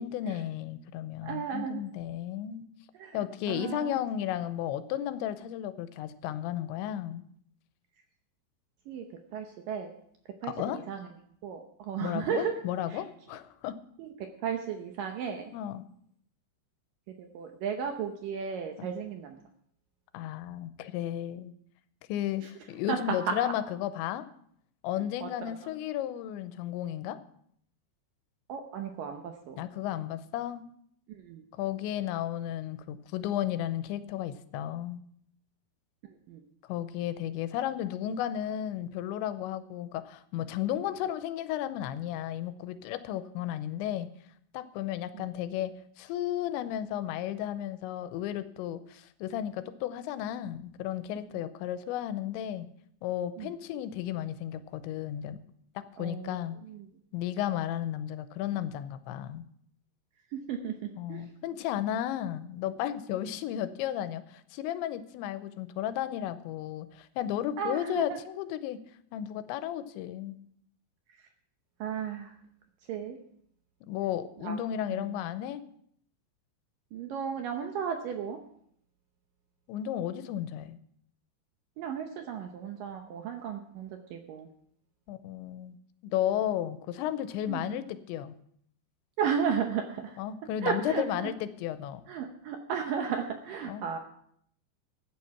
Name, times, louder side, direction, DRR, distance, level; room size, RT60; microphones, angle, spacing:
voice 1, 0.0-2.6 3.1-7.2 10.5-10.8 12.0-13.8 15.5-15.8 18.8-18.9 20.1-21.5 22.1-24.3 24.8-27.2 29.6-30.7 31.5-35.0 36.7-44.1 44.5-52.7 53.0-55.4 55.8-56.6 57.1-59.4 61.0-68.8 69.1-70.4 73.8-75.6 79.7-80.8 85.1-85.8 86.0-88.3 90.2-92.0 93.6-93.8, left 11 dB, 85° left, 12 dB, 3.0 m, -33 dB
voice 2, 1.2-1.8 3.0-3.2 3.5-4.0 8.9-9.1 9.3-9.9 10.4-11.1 11.4-12.5 12.9-13.0 14.0-15.5 17.2-19.4 22.9-23.3 25.2-25.3 28.5-29.6 31.1-31.4 36.3-36.4 45.1-45.3 53.4-53.5 56.0-56.4 56.7-56.9 60.3-61.3 67.6-68.2 71.8-72.3 72.9-73.2 74.4-74.6 74.9-75.0 76.9-78.4 81.8-84.5 87.5-87.7 89.2-90.2 90.6-91.3 92.1-94.0, right 7 dB, 85° right, 5 dB, 1.9 m, -34 dB
14.0 x 9.1 x 5.8 m, 0.66 s
omnidirectional pair, 5.3 m